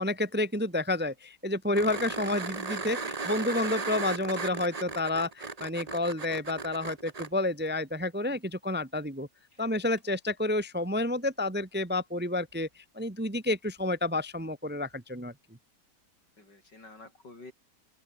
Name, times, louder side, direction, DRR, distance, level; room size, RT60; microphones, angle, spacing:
voice 1, 0.0-9.3 9.6-15.3, left 2 dB, 10° right, 0.7 m, -30 dB
sound 1, 1.7-7.3 10.0-10.1, right 4 dB, 25° right, 1.2 m, -36 dB
voice 2, 9.5-9.9 16.4-17.5, left 2 dB, 90° left, 7.1 m, -50 dB
open air
omnidirectional pair, 1.8 m